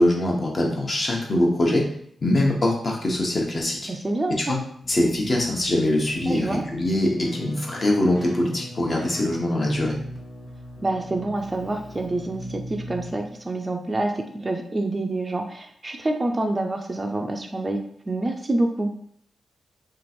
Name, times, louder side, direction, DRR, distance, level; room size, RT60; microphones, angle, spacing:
voice 1, 0.0-1.9 2.2-3.8 4.4-4.6 4.9-9.9, left 1 dB, 40° left, -1 dB, 1.0 m, -23 dB
voice 2, 3.9-4.6 6.3-6.6 10.8-17.8 18.1-18.9, right 2 dB, 30° right, 4 dB, 0.4 m, -27 dB
Keyboard (musical), 4.8-13.5, equal, 15° left, 1.2 m, -40 dB
3.0 x 2.5 x 4.2 m, 0.67 s
cardioid pair, 80°, 0 cm